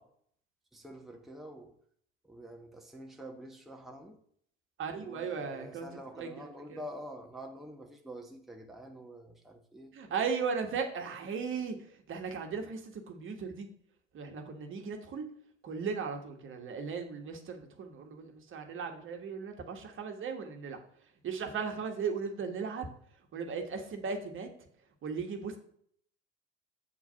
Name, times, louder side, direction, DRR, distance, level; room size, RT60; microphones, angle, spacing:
voice 1, 0.7-1.7 2.2-4.2 5.0-9.9, equal, ahead, 1.1 m, -47 dB
voice 2, 4.8-5.9 6.2-6.8 9.9-13.7 14.1-15.2 15.6-20.8 21.2-22.9 23.3-24.5 25.0-25.6, right 5 dB, 35° right, 1.5 m, -37 dB
8.0 x 4.7 x 5.7 m
figure-of-eight pair, 65°, 33 cm